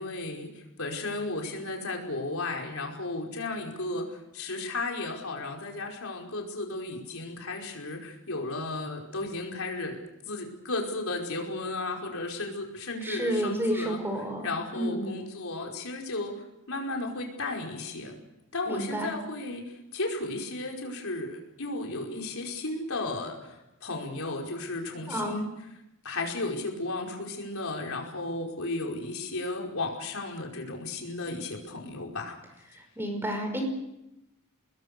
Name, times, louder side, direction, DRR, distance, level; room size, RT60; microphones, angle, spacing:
voice 1, 0.0-14.0 14.4-18.2 18.5-25.5 26.0-32.3, left 2 dB, 65° left, 1 dB, 5.0 m, -34 dB
voice 2, 13.0-15.2 18.7-19.1 25.1-25.4 32.7-33.6, right 1 dB, 10° right, 4 dB, 5.4 m, -31 dB
26.5 x 20.5 x 6.8 m, 0.90 s
head